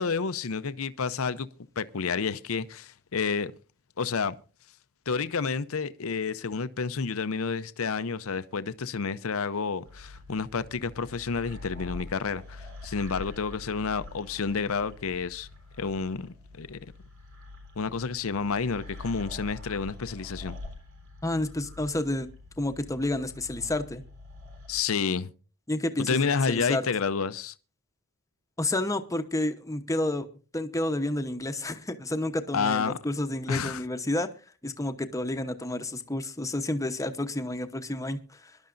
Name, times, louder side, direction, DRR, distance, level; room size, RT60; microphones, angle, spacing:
voice 1, 0.0-1.5 1.8-3.5 4.0-4.3 5.1-15.5 15.8-16.8 17.8-20.6 24.7-25.3 26.0-27.5 32.5-33.0 33.5-33.8, left 5 dB, 70° left, 0.7 m, -30 dB
sound 1, 9.9-24.8, left 2 dB, 70° right, 3.8 m, -45 dB
voice 2, 21.2-22.3 22.6-24.0 25.7-26.9 28.6-30.3 30.5-34.3 34.6-38.6, left 1 dB, 15° left, 1.0 m, -30 dB
24.0 x 11.5 x 2.6 m
head